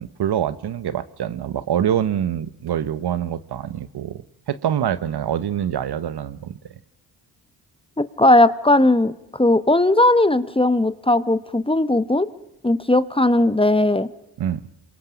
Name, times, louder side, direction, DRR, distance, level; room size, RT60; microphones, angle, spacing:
voice 1, 0.0-6.6 14.4-14.6, right 10 dB, 65° right, 1.0 m, -25 dB
voice 2, 8.0-12.3 12.6-14.1, left 1 dB, 15° left, 1.0 m, -18 dB
27.5 x 22.5 x 5.2 m
supercardioid pair, 55°, 43 cm